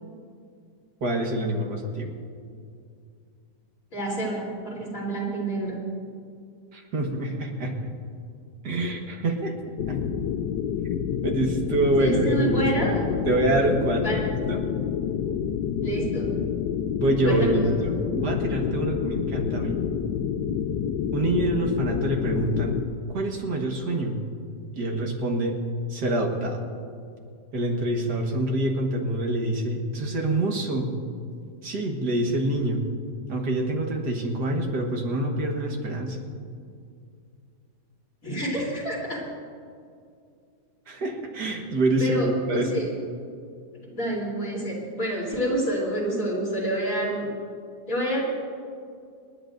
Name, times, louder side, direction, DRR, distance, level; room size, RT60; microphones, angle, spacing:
voice 1, 1.0-2.2 6.7-7.7 8.6-9.5 9.9-10.0 11.2-13.0 13.3-14.2 14.5-14.6 17.0-19.8 21.1-22.8 23.1-24.2 24.8-25.6 25.9-26.6 27.5-30.9 31.6-32.8 33.3-36.2 40.9-42.8, right 1 dB, 70° right, 1 dB, 2.0 m, -26 dB
voice 2, 3.9-5.8 12.0-13.1 14.0-14.2 15.8-16.3 17.2-17.7 38.2-39.2 42.0-42.9 43.8-47.3 47.9-48.2, right 1 dB, 50° left, -5 dB, 3.9 m, -28 dB
sound 1, 9.8-22.9, left 8 dB, 90° left, 1.3 m, -28 dB
27.5 x 11.0 x 2.6 m, 2.3 s
omnidirectional pair, 1.8 m